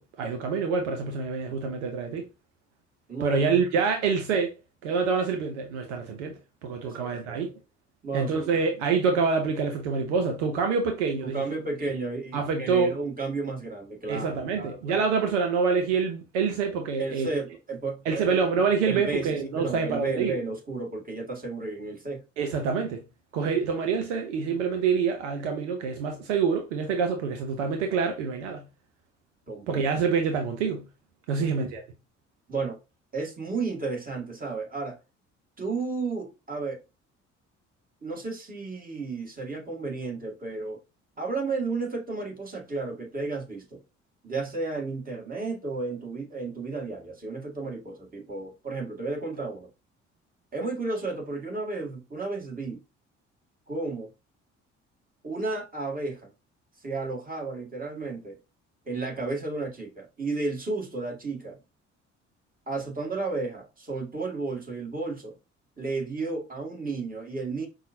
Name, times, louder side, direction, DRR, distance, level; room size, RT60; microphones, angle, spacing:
voice 1, 0.0-2.2 3.2-4.5 4.8-7.5 8.1-11.4 12.3-12.9 14.1-17.3 18.1-20.3 22.4-23.0 23.3-28.6 29.7-30.8 31.3-31.8, right 5 dB, 75° right, 0.7 m, -26 dB
voice 2, 6.8-7.4 8.0-8.5 11.2-15.1 17.0-18.5 18.8-22.2 29.5-29.8 31.4-31.5 32.5-32.8 33.1-35.0 35.6-36.8 38.0-40.8 41.2-43.8 44.2-49.7 50.5-52.8 53.7-54.1 55.2-56.3 56.8-58.4 58.9-61.6 62.7-65.4 65.8-67.7, right 3 dB, 25° right, 1.8 m, -33 dB
5.5 x 2.3 x 2.7 m
figure-of-eight pair, 50°, 37 cm